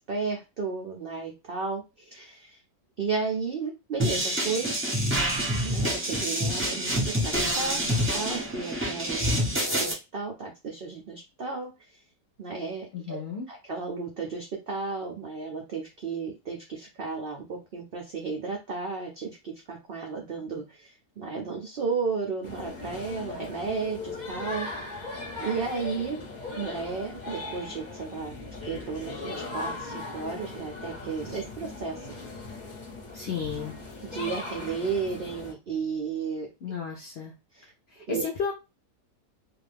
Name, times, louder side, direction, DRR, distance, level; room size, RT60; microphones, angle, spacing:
voice 1, 0.1-2.6 3.0-4.7 5.6-9.5 9.8-12.0 12.4-13.2 13.5-24.7 25.4-26.2 26.6-28.4 28.6-32.1 34.1-36.5 37.5-37.7 38.1-38.2, right 5 dB, 75° right, 1 dB, 0.5 m, -33 dB
sound 1, 4.0-9.9, equal, 10° right, 0.6 m, -27 dB
voice 2, 12.9-13.5 31.3-31.4 33.1-33.7 36.6-37.3 37.9-38.5, left 6 dB, 65° left, -1 dB, 0.6 m, -33 dB
sound 2, 22.4-35.5, left 3 dB, 35° left, 0.8 m, -39 dB
2.5 x 2.4 x 3.3 m, 0.26 s
omnidirectional pair, 1.7 m